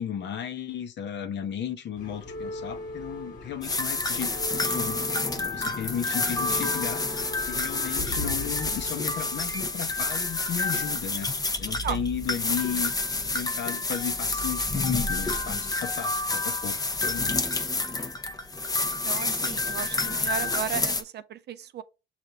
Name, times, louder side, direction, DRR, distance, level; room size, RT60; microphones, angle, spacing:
voice 1, 0.0-5.0 5.3-7.1 7.5-11.3 11.6-12.9 13.3-17.5, left 8 dB, 65° left, 0.7 m, -34 dB
sound 1, 1.9-11.4 12.3-13.4 13.7-13.9 14.8-14.9, left 2 dB, 45° left, 1.2 m, -39 dB
sound 2, 3.6-21.0, left 3 dB, 20° left, 0.6 m, -29 dB
voice 2, 19.0-21.8, right 9 dB, 60° right, 0.5 m, -34 dB
6.7 x 2.5 x 2.8 m
cardioid pair, 90°, 20 cm